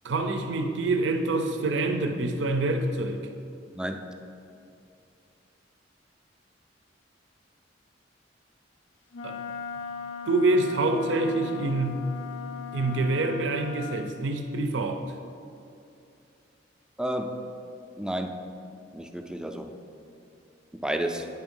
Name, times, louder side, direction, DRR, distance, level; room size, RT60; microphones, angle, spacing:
voice 1, 0.0-3.3 9.2-9.4 10.3-12.1 12.7-15.1, right 2 dB, 75° right, 6 dB, 0.5 m, -26 dB
voice 2, 3.7-4.1 17.0-17.4 18.0-18.4 18.9-19.7 20.8-21.3, right 1 dB, 5° right, 5 dB, 0.3 m, -31 dB
Wind instrument woodwind instrument, 9.1-14.1, left 7 dB, 70° left, 0.4 m, -38 dB
9.2 x 3.6 x 5.3 m, 2.6 s
head